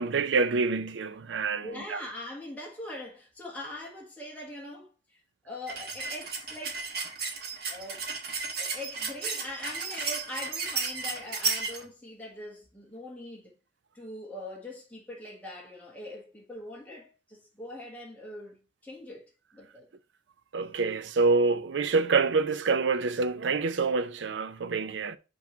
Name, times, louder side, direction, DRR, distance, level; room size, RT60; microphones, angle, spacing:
voice 1, 0.0-2.0 20.5-25.2, right 4 dB, 80° right, 0.5 m, -26 dB
voice 2, 1.6-5.2 5.4-6.8 7.7-8.1 8.6-13.5 13.9-18.6 18.8-19.9, left 1 dB, 10° left, 1.4 m, -42 dB
sound 1, 5.7-11.8, right 4 dB, 55° right, 1.2 m, -34 dB
5.9 x 3.1 x 5.1 m
head